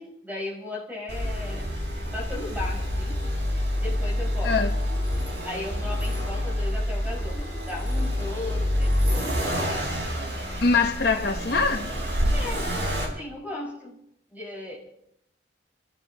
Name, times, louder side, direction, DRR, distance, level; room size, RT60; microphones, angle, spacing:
voice 1, 0.0-1.7 2.1-3.2 3.8-4.6 5.4-9.5 12.3-12.6 13.0-14.0 14.3-14.8, left 2 dB, 10° right, 5.7 m, -36 dB
Accelerating revving vroom, 1.1-13.0, equal, 65° right, 4.9 m, -27 dB
voice 2, 10.6-11.9, left 4 dB, 60° left, 1.0 m, -23 dB
29.5 x 15.0 x 3.0 m
head